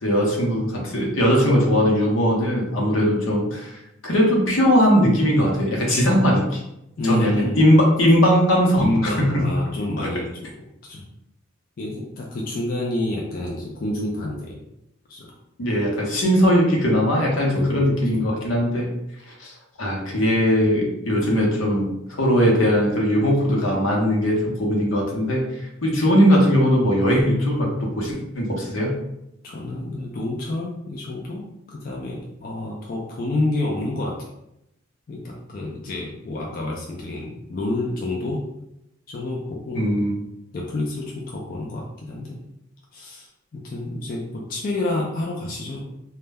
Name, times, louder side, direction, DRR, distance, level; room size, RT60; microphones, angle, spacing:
voice 1, 0.0-3.7 4.0-6.6 7.0-8.9 9.2-9.5 15.6-18.9 19.4-19.5 19.8-21.9 22.2-25.4 25.8-28.9 39.7-40.2, equal, 80° left, -1 dB, 0.7 m, -19 dB
voice 2, 7.0-7.6 8.8-10.5 10.8-11.0 11.8-14.6 15.1-15.3 17.5-18.3 29.4-34.2 35.1-38.4 39.1-39.8 40.5-42.4 42.9-45.8, left 2 dB, 45° left, -2 dB, 0.4 m, -29 dB
2.1 x 2.0 x 3.3 m, 0.85 s
head